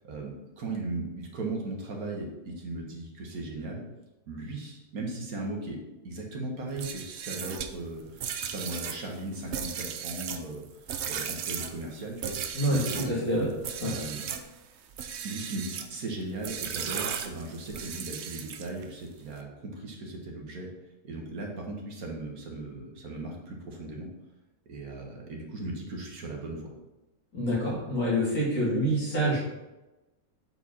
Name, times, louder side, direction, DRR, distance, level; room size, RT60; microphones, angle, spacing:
voice 1, 0.0-3.8 4.3-5.8 6.0-12.4 12.6-13.3 13.8-14.2 15.2-20.7 21.0-24.1 24.7-26.7, right 2 dB, 80° right, 0 dB, 1.9 m, -37 dB
sound 1, 6.7-13.2 13.6-14.5 14.9-15.9 16.4-18.8, right 8 dB, 60° right, 0.8 m, -36 dB
voice 2, 12.5-13.5 13.8-13.9 27.3-29.4, equal, 80° left, -7 dB, 3.6 m, -27 dB
8.0 x 4.8 x 4.2 m, 1.0 s
omnidirectional pair, 1.5 m